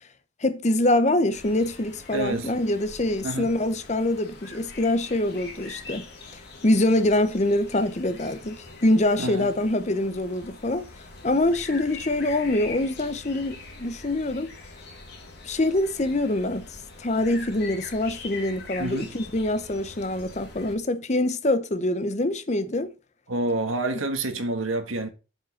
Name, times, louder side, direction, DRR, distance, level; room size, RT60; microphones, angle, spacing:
voice 1, 0.4-6.1 6.6-10.9 11.2-14.5 15.4-22.9, left 1 dB, 35° left, 0.8 m, -24 dB
sound 1, 1.3-20.7, left 3 dB, 50° left, 2.3 m, -43 dB
voice 2, 2.1-2.5 3.2-3.5 9.2-9.5 18.8-19.1 23.3-25.1, right 2 dB, 75° right, 1.6 m, -28 dB
7.7 x 5.1 x 6.0 m
head